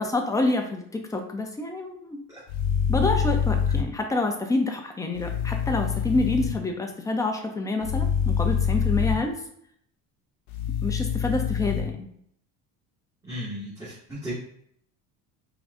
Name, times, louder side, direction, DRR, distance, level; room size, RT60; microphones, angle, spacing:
voice 1, 0.0-2.2 2.9-9.3 10.8-12.1, left 2 dB, 10° left, 3 dB, 0.6 m, -27 dB
sound 1, 2.5-3.8 5.2-6.5 7.8-9.2 10.5-11.8, left 7 dB, 85° left, 0.9 m, -25 dB
voice 2, 13.3-14.4, equal, 10° right, -11 dB, 1.9 m, -35 dB
4.6 x 3.9 x 2.6 m, 0.67 s
cardioid pair, 140°, 34 cm